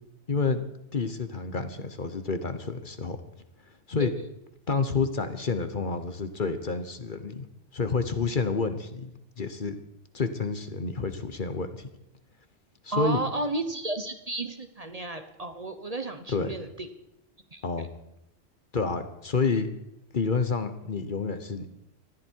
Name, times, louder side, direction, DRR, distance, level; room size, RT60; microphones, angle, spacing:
voice 1, 0.3-0.6 0.9-3.2 3.9-4.1 4.7-7.5 7.7-9.8 10.1-11.9 12.8-13.2 16.3-16.5 17.6-17.9 18.7-19.7 20.1-21.7, left 4 dB, 45° left, 9 dB, 1.2 m, -29 dB
voice 2, 12.9-16.9 17.5-17.6, right 2 dB, 35° right, 8 dB, 1.0 m, -33 dB
20.5 x 14.0 x 4.7 m, 0.83 s
omnidirectional pair, 1.2 m